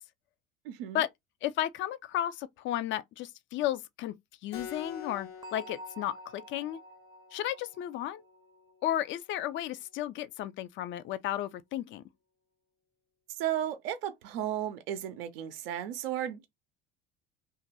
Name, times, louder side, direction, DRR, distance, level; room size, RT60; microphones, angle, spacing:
voice 1, 0.6-1.0 13.4-16.5, right 11 dB, 65° right, 0.6 m, -34 dB
voice 2, 1.4-4.1 4.4-6.8 7.3-8.2 8.8-12.0, left 12 dB, 40° left, 0.5 m, -33 dB
Keyboard (musical), 4.5-9.6, left 7 dB, 70° left, 1.0 m, -48 dB
Bell, 5.4-9.1, equal, 15° right, 0.5 m, -49 dB
2.9 x 2.5 x 4.0 m
figure-of-eight pair, 60°, 30 cm